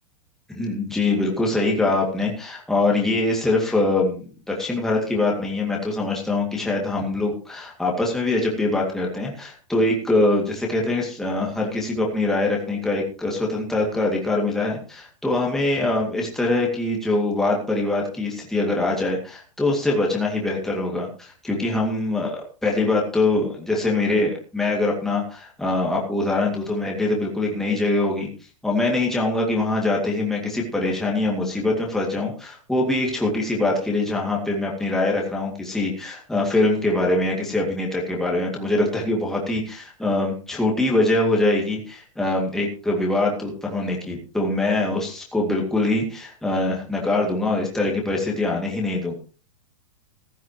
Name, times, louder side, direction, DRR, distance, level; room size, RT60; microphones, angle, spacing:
voice 1, 0.5-28.3 28.6-49.1, left 2 dB, ahead, -2 dB, 2.2 m, -23 dB
15.5 x 12.0 x 3.0 m, 0.36 s
supercardioid pair, 165°, 17 cm